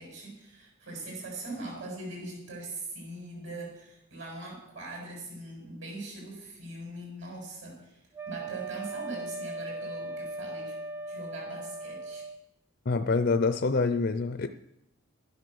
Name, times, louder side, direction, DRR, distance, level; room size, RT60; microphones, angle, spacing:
voice 1, 0.0-8.0 8.3-10.7 11.1-12.3, right 2 dB, 65° right, -1 dB, 7.5 m, -41 dB
Wind instrument woodwind instrument, 8.1-12.4, right 2 dB, 10° right, 0.5 m, -38 dB
voice 2, 12.9-14.5, left 4 dB, 50° left, 10 dB, 0.6 m, -26 dB
11.5 x 11.0 x 6.9 m, 0.81 s
head